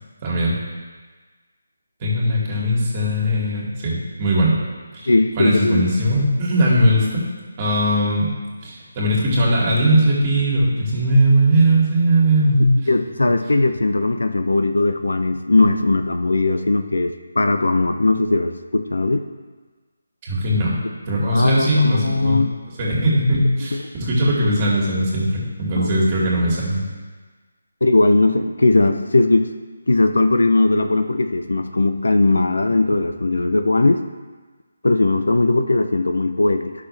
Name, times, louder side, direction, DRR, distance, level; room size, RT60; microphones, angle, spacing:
voice 1, 0.2-0.6 2.0-4.6 4.9-5.1 5.4-7.2 7.6-8.3 8.6-12.8 20.2-20.7 21.1-22.4 22.8-26.8, right 1 dB, 25° right, -4 dB, 2.4 m, -19 dB
voice 2, 5.1-5.9 12.9-19.2 21.3-22.5 23.7-23.9 25.7-25.9 27.8-29.5 29.9-34.0 34.8-36.7, left 2 dB, 80° left, 7 dB, 0.6 m, -18 dB
11.5 x 6.1 x 3.3 m, 1.4 s
figure-of-eight pair, 160°, 0 cm